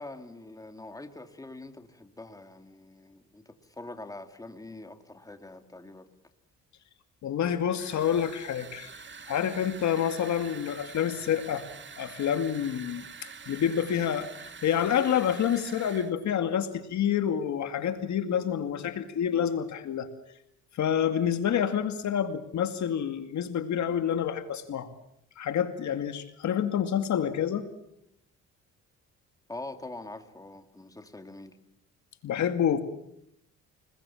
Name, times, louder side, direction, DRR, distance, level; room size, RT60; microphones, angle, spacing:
voice 1, 0.0-6.1 29.5-31.6, left 2 dB, 10° left, 7 dB, 2.6 m, -44 dB
voice 2, 7.2-8.9 9.3-11.6 12.0-14.3 14.6-20.1 20.8-24.9 25.4-27.7 32.2-32.8, left 9 dB, 70° left, 9 dB, 2.3 m, -28 dB
sound 1, 7.8-16.1, right 5 dB, 40° right, 2.2 m, -46 dB
29.0 x 21.0 x 7.2 m, 0.75 s
cardioid pair, 90°, 30 cm